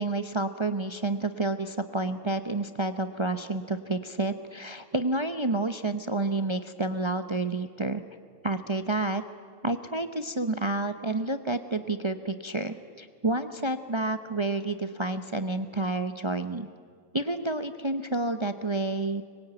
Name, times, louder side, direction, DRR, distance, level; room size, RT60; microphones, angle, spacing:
voice 1, 0.0-8.0 8.4-9.2 9.6-16.7 17.1-19.2, right 2 dB, 25° right, 10 dB, 0.7 m, -29 dB
25.5 x 22.0 x 9.0 m, 2.1 s
omnidirectional pair, 1.6 m